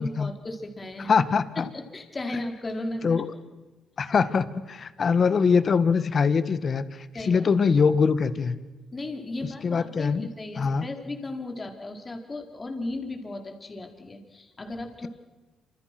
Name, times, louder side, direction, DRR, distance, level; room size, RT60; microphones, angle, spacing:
voice 1, 0.0-1.1 1.6-3.2 7.1-7.5 8.9-15.1, left 2 dB, 25° left, 4 dB, 4.6 m, -35 dB
voice 2, 1.1-1.7 3.0-3.2 4.0-8.6 9.6-10.3 10.6-10.9, left 5 dB, 45° left, 13 dB, 1.7 m, -23 dB
28.0 x 27.0 x 6.2 m, 1.2 s
cardioid pair, 90°, 0 cm